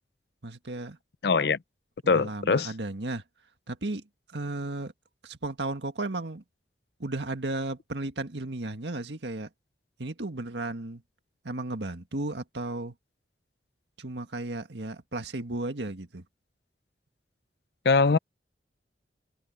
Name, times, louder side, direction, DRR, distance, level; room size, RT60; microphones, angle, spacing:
voice 1, 0.4-1.0 2.0-3.2 3.7-4.0 4.3-4.9 5.2-6.4 7.0-9.5 10.0-11.0 11.4-12.9 14.0-16.2, right 2 dB, 80° right, 1.8 m, -34 dB
voice 2, 1.2-1.6 2.1-2.7 17.8-18.2, left 4 dB, 60° left, 0.5 m, -22 dB
head